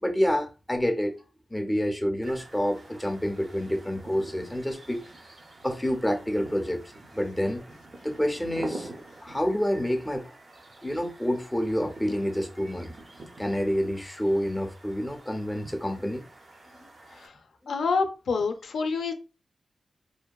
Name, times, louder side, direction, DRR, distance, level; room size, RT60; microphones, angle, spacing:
voice 1, 0.0-1.2 1.5-5.0 5.6-6.8 7.1-7.6 8.0-8.9 9.2-10.3 10.8-12.9 13.4-16.3 16.8-16.9 17.6-17.7, equal, 10° left, 0.5 m, -28 dB
sound 1, 2.2-17.3, right 2 dB, 45° right, 0.5 m, -46 dB
voice 2, 17.7-19.1, left 4 dB, 85° left, 0.4 m, -27 dB
2.5 x 2.2 x 2.2 m
wide cardioid pair, 95°, 0 cm